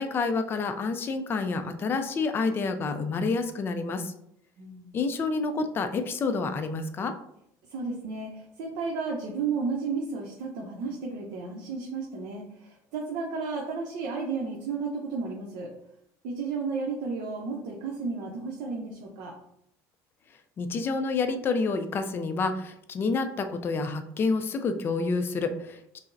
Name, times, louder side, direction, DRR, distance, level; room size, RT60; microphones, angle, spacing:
voice 1, 0.0-4.1 4.9-7.1 20.6-26.0, left 4 dB, 30° left, 8 dB, 0.3 m, -28 dB
voice 2, 4.6-4.9 7.7-15.7 16.2-19.4, right 4 dB, 70° right, -2 dB, 0.7 m, -33 dB
4.9 x 2.0 x 2.6 m, 0.74 s
cardioid pair, 150°, 8 cm